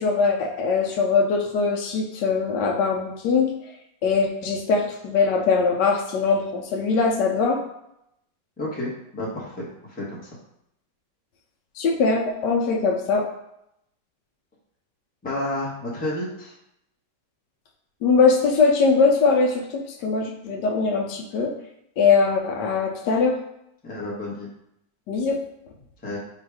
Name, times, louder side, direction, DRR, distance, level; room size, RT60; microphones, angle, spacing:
voice 1, 0.0-3.5 4.0-7.6 11.8-13.3 18.0-19.6 20.0-21.5 22.0-23.4 25.1-25.4, left 4 dB, 75° left, 2 dB, 1.2 m, -21 dB
voice 2, 8.6-10.4 15.2-16.5 23.8-24.5 26.0-26.2, left 1 dB, 5° left, -5 dB, 0.7 m, -31 dB
4.4 x 2.5 x 4.7 m, 0.80 s
omnidirectional pair, 1.9 m